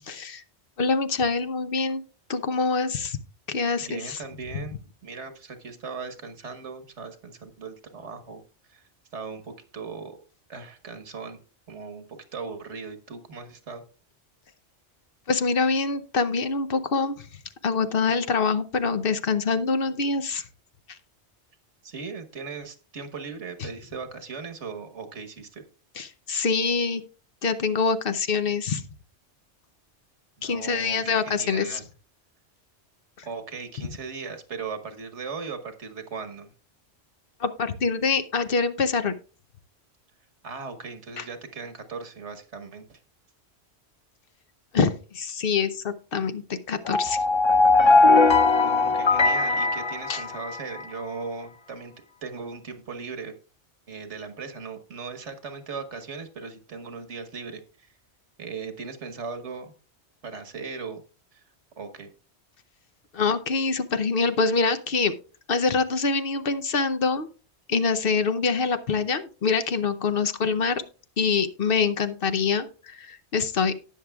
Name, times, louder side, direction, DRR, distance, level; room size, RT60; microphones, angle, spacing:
voice 1, 0.1-0.4 0.8-2.0 2.3-3.2 3.5-4.2 15.3-17.3 17.6-20.5 20.9-21.0 23.6-23.7 26.0-27.0 27.4-28.8 30.4-31.8 33.2-33.3 37.4-39.2 41.2-41.3 44.7-47.2 50.1-50.2 63.1-65.1 65.5-67.3 67.7-70.8 71.2-73.7, left 4 dB, 55° left, 10 dB, 0.9 m, -25 dB
voice 2, 3.8-4.8 5.0-8.4 8.7-8.8 9.1-10.2 10.5-11.4 11.7-13.8 21.8-25.6 30.4-31.8 33.2-36.5 40.4-43.0 48.6-51.9 52.2-53.3 53.9-57.9 58.4-59.7 60.2-61.0 61.3-61.4 61.8-62.1, right 5 dB, 90° right, 9 dB, 1.6 m, -38 dB
sound 1, 46.9-50.8, left 3 dB, 30° left, 0.6 m, -19 dB
18.0 x 6.5 x 2.3 m, 0.36 s
omnidirectional pair, 1.1 m